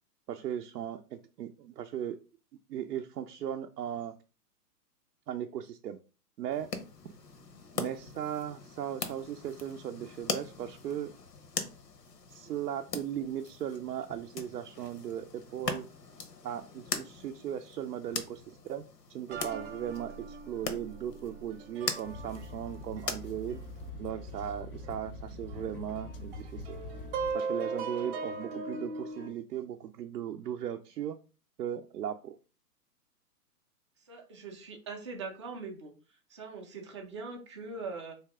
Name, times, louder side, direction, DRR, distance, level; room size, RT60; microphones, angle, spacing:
voice 1, 0.3-2.2 2.7-4.1 5.3-6.0 6.4-6.7 7.7-11.1 12.3-15.9 16.4-18.8 19.1-23.6 24.0-26.6 27.3-31.2 31.6-32.4, right 10 dB, 85° right, 5 dB, 0.6 m, -37 dB
sound 1, 6.5-23.9, left 5 dB, 90° left, 0.9 m, -41 dB
sound 2, 19.3-24.5 24.8-24.9 25.5-29.3, right 4 dB, 40° right, 0.8 m, -39 dB
sound 3, 22.0-27.3, left 2 dB, 40° left, 0.5 m, -44 dB
voice 2, 34.0-35.9 36.3-38.1, right 4 dB, 20° right, 1 dB, 0.4 m, -42 dB
3.3 x 2.8 x 3.4 m, 0.34 s
hypercardioid pair, 135°, 47 cm